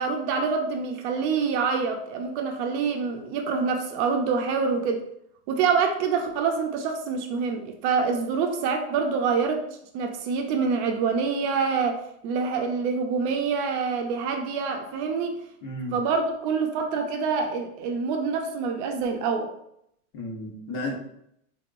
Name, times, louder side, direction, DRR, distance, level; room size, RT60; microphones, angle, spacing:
voice 1, 0.0-5.0 5.5-9.7 9.9-15.4 15.9-19.5, right 5 dB, 50° right, 4 dB, 0.6 m, -26 dB
voice 2, 15.6-16.0 20.1-20.9, left 1 dB, 50° left, -1 dB, 1.3 m, -33 dB
3.8 x 3.0 x 2.5 m, 0.74 s
supercardioid pair, 125°, 46 cm